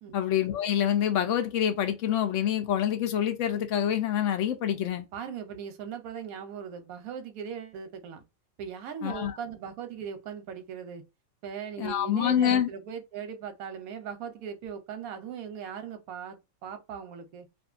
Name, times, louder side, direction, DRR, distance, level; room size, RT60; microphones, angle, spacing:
voice 1, 0.1-5.1 9.0-9.3 11.8-12.7, left 10 dB, 70° left, 0.9 m, -26 dB
voice 2, 5.1-8.2 8.6-11.0 11.4-17.5, right 7 dB, 85° right, 1.1 m, -39 dB
2.6 x 2.5 x 2.4 m
omnidirectional pair, 1.5 m